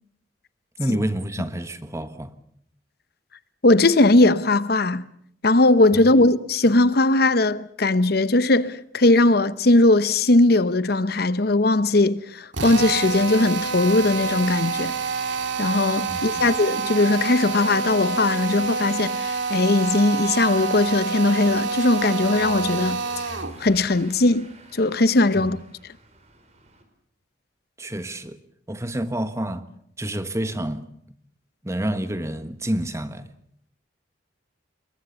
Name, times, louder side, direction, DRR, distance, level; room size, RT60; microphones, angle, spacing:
voice 1, 0.8-2.3 6.2-6.3 16.1-16.4 25.3-25.5 27.8-28.4 28.7-29.7 30.0-30.9 31.6-33.3, right 1 dB, 15° right, 1.4 m, -28 dB
voice 2, 3.6-5.0 5.4-14.9 15.6-23.0 23.6-24.5 24.7-25.6, left 2 dB, 55° left, 0.9 m, -19 dB
Drill, 12.5-23.6, right 4 dB, 80° right, 2.4 m, -27 dB
Car passing by / Engine, 20.1-26.8, right 1 dB, 35° right, 4.8 m, -48 dB
27.5 x 22.5 x 7.1 m
head